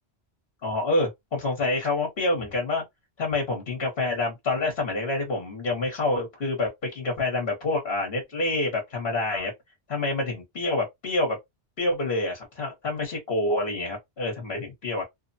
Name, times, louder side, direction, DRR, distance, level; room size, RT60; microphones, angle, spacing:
voice 1, 0.6-2.8 3.2-9.5 9.9-11.4 11.8-15.0, left 2 dB, 60° left, 1.3 m, -27 dB
3.1 x 2.1 x 2.6 m
omnidirectional pair, 1.1 m